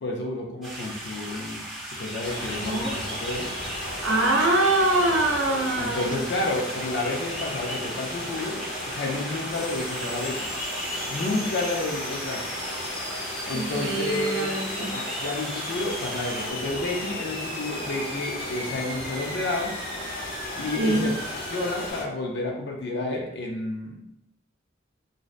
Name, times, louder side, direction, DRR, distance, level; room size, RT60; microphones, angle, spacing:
voice 1, 0.0-1.6 2.0-3.5 5.8-10.4 11.1-12.4 13.5-14.5 15.2-19.7 20.6-21.2 21.5-24.0, left 2 dB, 60° left, 0 dB, 0.4 m, -30 dB
sound 1, 0.6-16.5, right 1 dB, ahead, 0.6 m, -36 dB
sound 2, 2.2-22.0, left 1 dB, 80° left, 0.8 m, -36 dB
voice 2, 2.7-3.0 4.0-6.2 13.5-15.0 20.7-21.0, right 2 dB, 70° right, 0 dB, 0.6 m, -24 dB
sound 3, 9.5-21.9, equal, 30° left, 0.8 m, -39 dB
2.6 x 2.1 x 2.4 m, 0.77 s
head